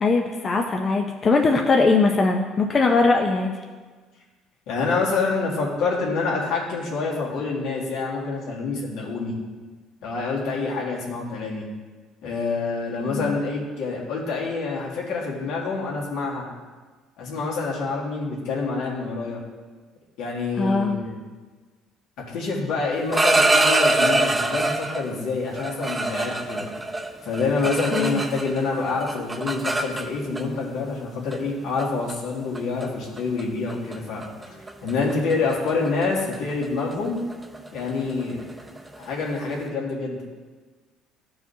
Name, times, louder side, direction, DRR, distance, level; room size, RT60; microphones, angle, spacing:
voice 1, 0.0-3.5 13.1-13.4 20.6-20.9 27.9-28.2, left 3 dB, 35° left, 2 dB, 0.5 m, -20 dB
voice 2, 4.7-9.3 10.0-11.7 12.2-16.5 17.2-19.4 20.2-21.2 22.3-26.7 27.2-34.3 34.8-37.2 37.7-38.4 39.0-40.2, left 4 dB, 80° left, -3 dB, 1.8 m, -27 dB
sound 1, 22.9-25.0 25.6-28.6 28.9-30.4 31.3-31.5 31.8-32.1 32.5-32.8 33.2-33.4 33.7-34.0 34.2-39.6, right 2 dB, 15° right, 0.7 m, -24 dB
13.0 x 4.8 x 2.7 m, 1.4 s
cardioid pair, 115°, 0 cm